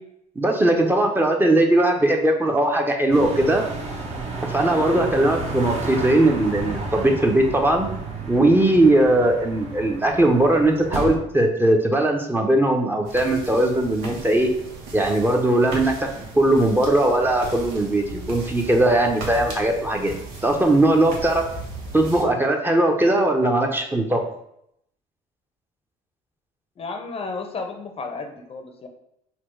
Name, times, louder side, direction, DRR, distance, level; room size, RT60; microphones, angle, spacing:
voice 1, 0.4-3.6 4.4-7.9 8.3-14.5 14.9-16.1 16.3-20.1 20.4-21.4 21.9-24.2, right 1 dB, 15° right, 2 dB, 0.7 m, -19 dB
sound 1, 3.1-11.2, right 3 dB, 45° right, 1.0 m, -32 dB
sound 2, 13.1-22.2, right 3 dB, 85° right, 1.0 m, -37 dB
voice 2, 26.8-28.9, left 3 dB, 40° left, 5 dB, 0.7 m, -33 dB
4.2 x 2.3 x 4.4 m, 0.76 s
supercardioid pair, 75°, 16 cm